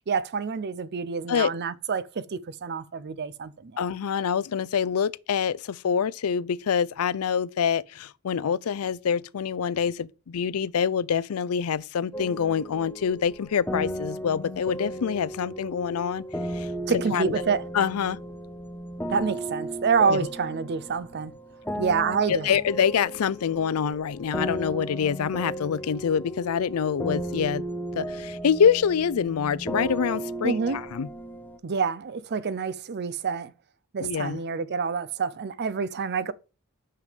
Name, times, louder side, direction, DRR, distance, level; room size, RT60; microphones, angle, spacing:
voice 1, 0.1-3.8 16.9-17.6 19.1-21.3 21.8-22.5 30.4-30.8 31.6-33.5 33.9-36.3, right 5 dB, 50° right, 0.5 m, -27 dB
voice 2, 3.8-16.2 16.5-16.7 17.1-17.3 17.7-18.2 20.1-20.2 22.3-27.6 27.9-31.1 34.0-34.4, left 7 dB, 85° left, 0.4 m, -26 dB
sound 1, 12.1-31.6, right 1 dB, 10° left, 0.6 m, -35 dB
6.0 x 5.8 x 5.1 m
head